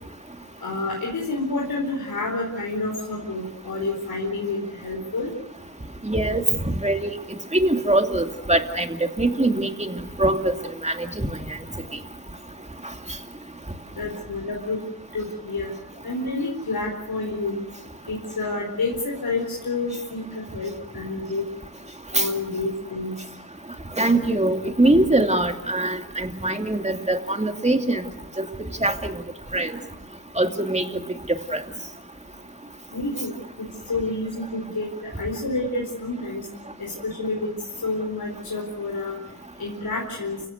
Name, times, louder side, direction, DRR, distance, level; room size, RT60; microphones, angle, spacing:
voice 1, 0.6-5.3 13.9-14.8 15.1-15.7 16.0-17.6 18.1-20.2 20.5-21.4 22.1-23.1 32.9-34.9 35.1-36.5 36.8-37.5 37.8-39.2 39.6-40.4, left 2 dB, 85° left, -2 dB, 4.5 m, -29 dB
voice 2, 6.0-7.1 7.5-8.9 9.2-10.5 10.8-11.6 22.1-22.3 24.0-28.0 28.4-28.5 28.8-29.2 29.5-29.7 30.4-30.8 31.5-31.6, right 1 dB, 20° right, 6 dB, 2.5 m, -22 dB
29.5 x 16.5 x 8.0 m, 0.85 s
wide cardioid pair, 60°, 35 cm